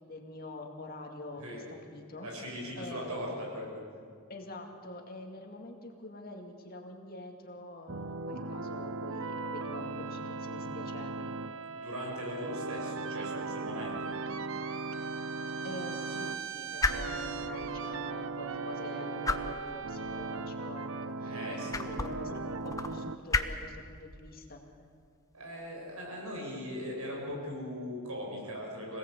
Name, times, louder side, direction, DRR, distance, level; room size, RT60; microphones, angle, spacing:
voice 1, 0.1-2.3 2.8-3.3 4.3-11.3 15.6-24.6, left 2 dB, 45° left, 2 dB, 2.4 m, -45 dB
voice 2, 1.4-1.7 2.2-3.8 11.7-14.2 21.2-21.8 25.3-29.0, equal, 90° right, -1 dB, 7.1 m, -39 dB
sound 1, 7.9-23.2, right 3 dB, 65° right, 0.8 m, -38 dB
sound 2, 13.8-27.4, left 3 dB, 15° left, 0.8 m, -39 dB
26.0 x 18.0 x 8.4 m, 2.2 s
head